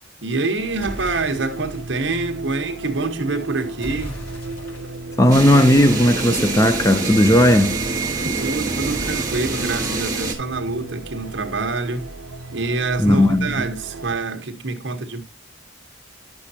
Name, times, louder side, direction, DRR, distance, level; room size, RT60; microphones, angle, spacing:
voice 1, 0.2-4.2 8.4-12.1 12.5-15.2, right 3 dB, 65° right, 1.3 m, -26 dB
sound 1, 0.5-14.2, right 2 dB, 85° right, 0.8 m, -36 dB
sound 2, 0.8-2.0 3.8-6.5 8.8-11.5, equal, 75° left, 4.3 m, -39 dB
voice 2, 5.2-7.8 13.0-13.5, left 1 dB, 15° left, 0.5 m, -15 dB
sound 3, 5.3-10.4, right 3 dB, 15° right, 1.7 m, -25 dB
11.0 x 6.9 x 2.8 m
head